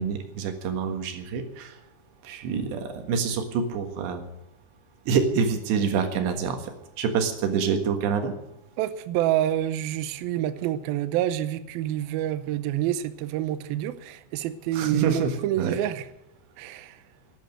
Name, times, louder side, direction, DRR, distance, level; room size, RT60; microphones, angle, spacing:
voice 1, 0.0-1.8 2.2-4.3 5.1-6.7 7.0-8.3 14.7-15.8, right 6 dB, 75° right, 3.7 m, -26 dB
voice 2, 8.8-16.1 16.6-17.0, right 12 dB, 90° right, 2.2 m, -28 dB
12.5 x 10.5 x 9.1 m
omnidirectional pair, 5.2 m